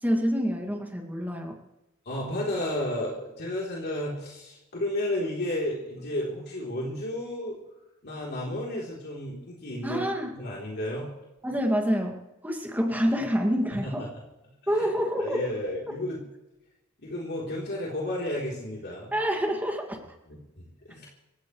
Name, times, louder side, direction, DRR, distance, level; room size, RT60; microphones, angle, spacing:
voice 1, 0.0-1.6 9.8-10.3 11.4-14.1 14.7-15.4 19.1-20.0, equal, 10° right, 2 dB, 2.3 m, -27 dB
voice 2, 2.1-7.6 8.0-10.0 10.3-11.1 13.7-14.2 14.7-14.9 15.2-16.2 17.0-19.1 20.3-21.1, left 1 dB, 50° left, -4 dB, 3.6 m, -32 dB
28.0 x 15.0 x 3.3 m, 1.0 s
head